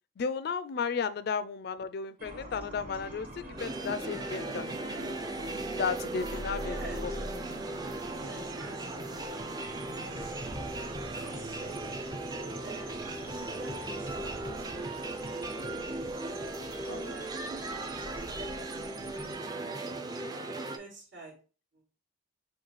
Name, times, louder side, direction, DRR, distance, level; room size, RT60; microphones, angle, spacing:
voice 1, 0.2-4.7 5.7-7.1 16.8-17.2, left 5 dB, 60° left, 13 dB, 0.4 m, -34 dB
sound 1, 2.2-19.4, right 1 dB, 50° right, 1.3 m, -45 dB
sound 2, 3.6-20.8, right 2 dB, 20° right, 0.4 m, -37 dB
voice 2, 6.6-7.0 8.1-9.3 9.9-10.4 11.1-11.9 12.6-15.6 16.9-18.5 20.8-21.3 21.7-21.9, right 3 dB, 75° right, -5 dB, 2.1 m, -49 dB
6.2 x 2.3 x 3.0 m, 0.36 s
head